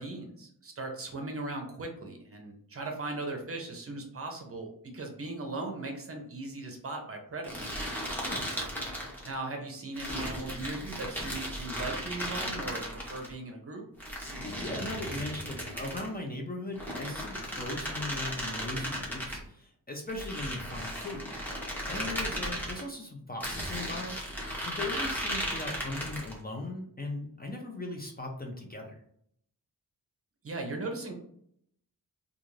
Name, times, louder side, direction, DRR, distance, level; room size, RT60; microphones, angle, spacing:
voice 1, 0.0-4.7 4.9-7.8 9.2-13.8 21.9-22.1 30.4-31.1, right 2 dB, 40° right, 2 dB, 0.6 m, -38 dB
sound 1, 7.4-9.3 10.0-13.3 14.0-16.1 16.7-19.4 20.1-22.8 23.4-26.4, equal, 5° left, 0.7 m, -36 dB
voice 2, 8.1-8.5 14.4-21.4 21.7-29.0, left 2 dB, 25° left, 1 dB, 0.4 m, -39 dB
2.4 x 2.4 x 3.1 m, 0.68 s
wide cardioid pair, 140°, 36 cm